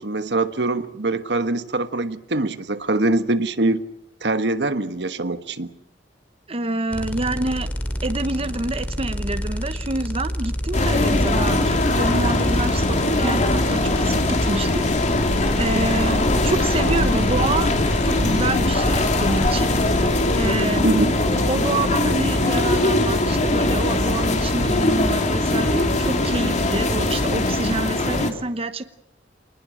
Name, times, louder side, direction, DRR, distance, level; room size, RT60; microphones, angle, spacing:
voice 1, 0.0-3.8 4.2-5.7 20.8-21.1, right 2 dB, 75° right, 11 dB, 1.3 m, -23 dB
voice 2, 6.5-7.7 8.0-14.8 15.6-17.7 18.0-19.7 20.4-21.1 21.5-28.9, right 2 dB, 35° right, 11 dB, 1.0 m, -27 dB
sound 1, 6.9-20.7, equal, 10° left, 2.7 m, -29 dB
sound 2, 10.7-28.3, left 2 dB, 40° left, 2.8 m, -21 dB
27.5 x 20.0 x 7.7 m, 0.75 s
head